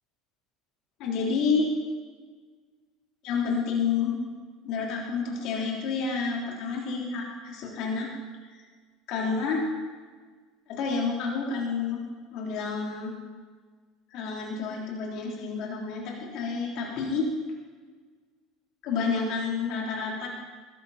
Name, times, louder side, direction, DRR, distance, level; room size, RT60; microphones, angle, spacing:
voice 1, 1.0-1.7 3.2-4.1 4.6-8.1 8.5-8.6 9.1-9.6 10.7-12.0 12.3-13.1 14.1-16.0 16.3-17.3 18.8-20.3, left 5 dB, 55° left, -3 dB, 3.6 m, -29 dB
21.0 x 11.5 x 4.4 m, 1.5 s
cardioid pair, 155°, 0 cm